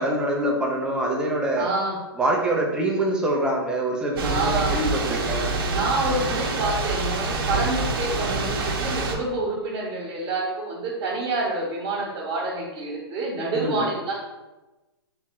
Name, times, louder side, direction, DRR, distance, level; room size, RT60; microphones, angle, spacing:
voice 1, 0.0-1.7 2.2-5.5 13.6-13.8, right 1 dB, 5° right, 0 dB, 0.4 m, -25 dB
voice 2, 1.6-2.0 4.2-4.8 5.7-14.2, right 2 dB, 25° right, -5 dB, 1.0 m, -28 dB
Thunder / Rain, 4.1-9.1, right 3 dB, 60° right, 0.8 m, -26 dB
3.6 x 2.9 x 4.5 m, 1.1 s
hypercardioid pair, 150°, 13 cm